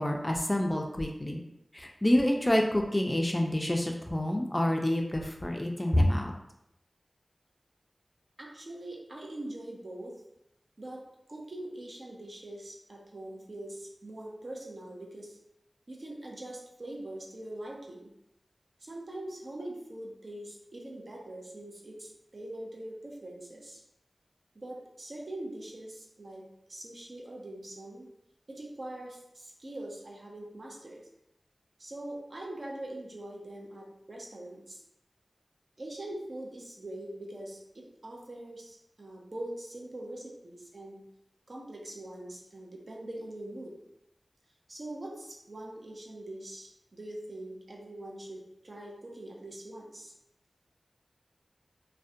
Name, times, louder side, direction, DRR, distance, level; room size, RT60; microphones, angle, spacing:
voice 1, 0.0-1.4 1.7-6.3, left 1 dB, 20° left, 2 dB, 0.3 m, -27 dB
voice 2, 8.4-10.2 10.8-11.0 11.3-15.4 15.9-18.1 18.8-23.8 24.5-28.0 28.5-31.0 31.8-34.8 35.8-41.0 41.5-43.8 44.7-50.1, right 1 dB, 60° right, -2 dB, 0.5 m, -43 dB
2.4 x 2.1 x 2.6 m, 0.82 s
wide cardioid pair, 55°, 0 cm